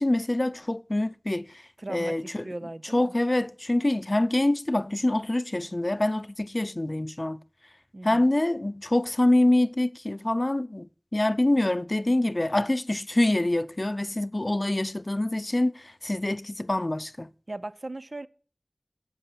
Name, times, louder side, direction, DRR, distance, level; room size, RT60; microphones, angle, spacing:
voice 1, 0.0-1.5 1.9-2.4 2.9-7.4 8.0-10.9 11.1-17.3, left 1 dB, 50° left, 0.5 m, -25 dB
voice 2, 1.8-3.1 7.9-8.3 17.5-18.3, right 2 dB, 70° right, 0.5 m, -38 dB
8.4 x 7.9 x 7.8 m
wide cardioid pair, 40°, 0 cm